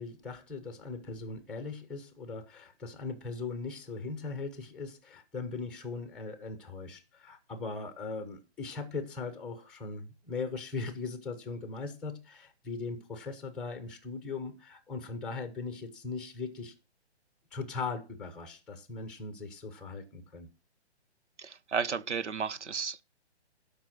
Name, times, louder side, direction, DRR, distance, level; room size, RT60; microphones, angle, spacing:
voice 1, 0.0-16.7 17.5-20.5, left 4 dB, ahead, 0.9 m, -39 dB
voice 2, 21.4-23.0, right 6 dB, 90° right, 1.0 m, -33 dB
12.0 x 5.3 x 6.2 m
hypercardioid pair, 155°, 34 cm